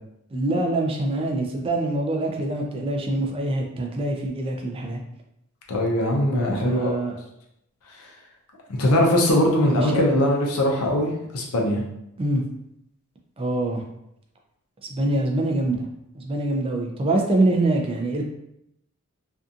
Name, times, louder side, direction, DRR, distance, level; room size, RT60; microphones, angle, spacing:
voice 1, 0.3-5.0 6.6-7.2 9.6-10.1 12.2-12.4 13.4-13.8 14.8-15.9 16.1-18.2, right 2 dB, 25° right, 1 dB, 0.3 m, -24 dB
voice 2, 5.7-6.9 8.8-11.8, left 1 dB, 70° left, 0 dB, 0.5 m, -21 dB
2.6 x 2.4 x 2.4 m, 0.80 s
head